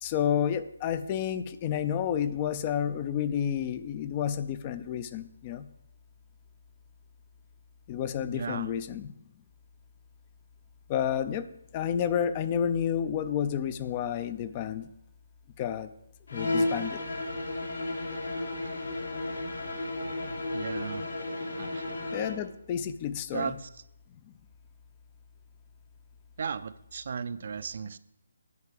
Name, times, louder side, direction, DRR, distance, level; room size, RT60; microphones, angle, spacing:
voice 1, 0.0-5.7 7.9-9.1 10.9-11.5 11.7-14.9 15.6-15.9 16.3-17.0 22.1-23.6 24.3-24.4, left 9 dB, 20° left, 13 dB, 0.4 m, -30 dB
voice 2, 8.3-8.7 20.5-21.0 21.5-21.8 23.3-23.7 26.4-28.0, right 6 dB, 50° right, 15 dB, 0.4 m, -35 dB
sound 1, 16.3-22.4, left 2 dB, 85° left, 3.7 m, -33 dB
9.5 x 5.8 x 7.5 m, 0.79 s
hypercardioid pair, 170°, 0 cm